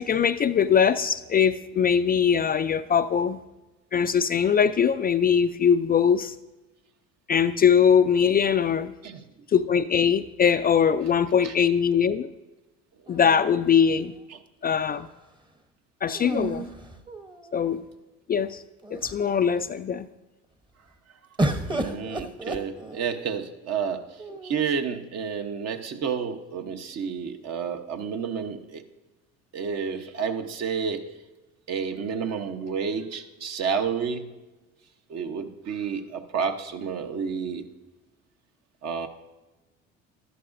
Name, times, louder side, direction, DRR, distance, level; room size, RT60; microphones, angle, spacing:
voice 1, 0.0-3.4 3.9-6.4 7.3-8.9 9.5-12.3 13.1-14.1 14.6-15.1 16.0-16.7 17.5-17.8 18.3-18.6 18.9-20.1, left 7 dB, 30° left, 10 dB, 0.3 m, -21 dB
sound 1, 13.1-14.2 16.1-17.7 18.4-18.5 18.8-19.4 21.4-23.3 24.2-24.9, right 1 dB, 15° right, 0.9 m, -32 dB
voice 2, 21.7-28.8 29.5-31.1 31.7-34.3 35.1-37.7 38.8-39.1, right 6 dB, 55° right, 6 dB, 1.0 m, -30 dB
12.5 x 11.0 x 2.6 m, 1.1 s
supercardioid pair, 80°, 32 cm